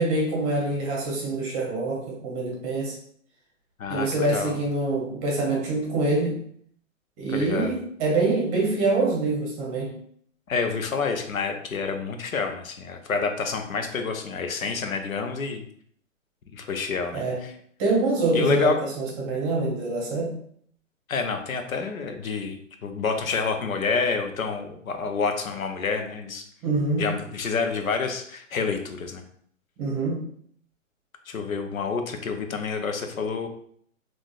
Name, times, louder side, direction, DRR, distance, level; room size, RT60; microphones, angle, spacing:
voice 1, 0.0-3.0 3.9-6.4 7.2-9.9 17.1-17.4 17.8-20.3 26.6-27.2 29.8-30.3, right 2 dB, 30° right, -2 dB, 0.9 m, -25 dB
voice 2, 3.8-4.6 7.3-7.7 10.5-15.6 16.5-17.5 18.3-18.8 21.1-22.6 22.8-26.4 27.0-29.2 31.3-33.5, left 4 dB, 90° left, 5 dB, 0.7 m, -28 dB
3.7 x 2.4 x 2.3 m, 0.63 s
hypercardioid pair, 135°, 40 cm